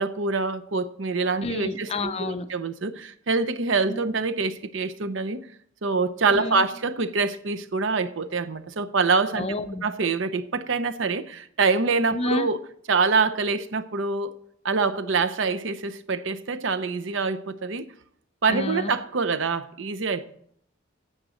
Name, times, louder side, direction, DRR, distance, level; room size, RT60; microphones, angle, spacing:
voice 1, 0.0-5.4 5.8-9.5 9.8-12.6 12.9-14.3 14.6-17.9 18.4-20.3, right 4 dB, 65° right, 0.7 m, -25 dB
voice 2, 1.4-2.5 3.9-4.0 6.3-6.7 9.3-9.8 12.1-12.5 18.5-18.9, left 2 dB, 30° left, 0.6 m, -29 dB
9.2 x 7.3 x 6.3 m
head